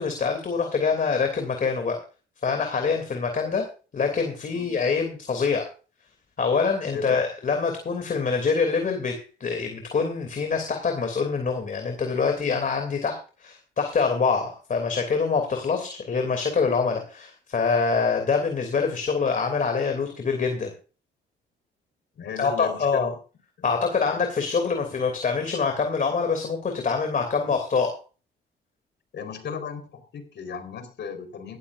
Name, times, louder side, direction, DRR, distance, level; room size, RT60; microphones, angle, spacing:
voice 1, 0.0-2.0 2.4-3.6 3.9-5.7 6.4-20.7 22.4-23.1 23.6-28.0, left 5 dB, 45° left, 5 dB, 2.9 m, -25 dB
voice 2, 6.9-7.2 22.2-23.2 23.6-23.7 24.0-24.3 29.1-31.6, left 6 dB, 60° left, 7 dB, 4.2 m, -36 dB
17.0 x 13.5 x 2.6 m, 0.36 s
cardioid pair, 90°, 20 cm